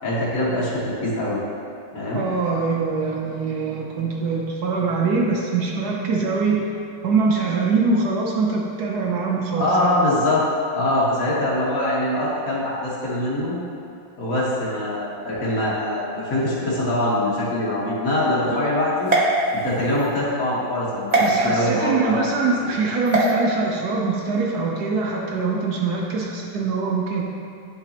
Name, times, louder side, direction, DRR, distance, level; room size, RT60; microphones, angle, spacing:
voice 1, 0.0-1.4 1.9-2.2 9.6-10.4 10.7-13.5 14.2-19.1 19.5-22.1 22.6-22.7, left 1 dB, 45° left, -7 dB, 1.7 m, -23 dB
voice 2, 2.1-6.7 7.0-9.9 18.5-18.6 21.2-27.2, right 4 dB, 70° right, -1 dB, 1.0 m, -23 dB
sound 1, 19.0-20.1 21.1-21.3 23.1-23.3, right 2 dB, 40° right, 0.5 m, -21 dB
11.0 x 4.0 x 2.8 m, 2.5 s
omnidirectional pair, 2.2 m